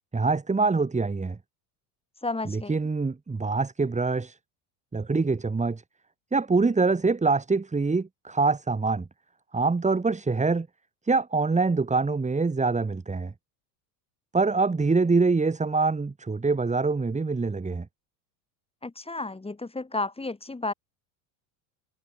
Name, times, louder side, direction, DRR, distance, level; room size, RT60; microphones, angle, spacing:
voice 1, 0.1-1.4 2.5-4.4 4.9-5.8 6.3-9.0 9.5-10.7 11.0-13.3 14.3-17.9, right 4 dB, 15° right, 4.4 m, -24 dB
voice 2, 2.2-2.8 18.8-20.7, left 3 dB, 10° left, 7.5 m, -32 dB
supercardioid pair, 115°, 48 cm